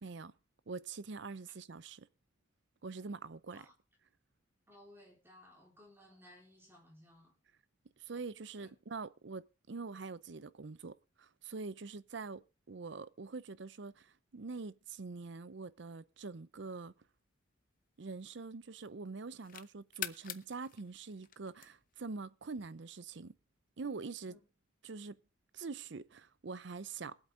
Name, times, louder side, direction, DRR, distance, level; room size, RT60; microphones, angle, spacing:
voice 1, 0.0-0.3 0.7-2.1 2.8-3.7 8.0-16.9 18.0-23.3 23.8-24.3 24.8-25.2 25.5-27.2, right 4 dB, 65° right, 0.6 m, -44 dB
voice 2, 4.7-7.4 8.6-8.7 24.3-24.4, left 1 dB, 10° right, 3.9 m, -59 dB
sound 1, 16.9-18.6 19.1-22.1, left 11 dB, 45° left, 0.7 m, -47 dB
22.0 x 8.1 x 3.7 m
head